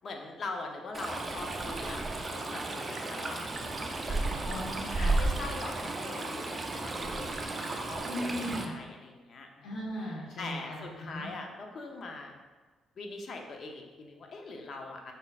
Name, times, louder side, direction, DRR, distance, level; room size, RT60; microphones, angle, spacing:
voice 1, 0.0-4.6 5.2-9.8 10.4-12.3 13.0-15.1, left 3 dB, 55° left, 2 dB, 0.7 m, -42 dB
Stream, 0.9-8.6, right 2 dB, 30° right, 0.5 m, -33 dB
voice 2, 4.4-5.2 8.0-8.7 9.6-10.8 11.1-11.3, equal, 85° left, -4 dB, 1.3 m, -37 dB
5.2 x 4.1 x 2.4 m, 1.3 s
cardioid pair, 90°, 0 cm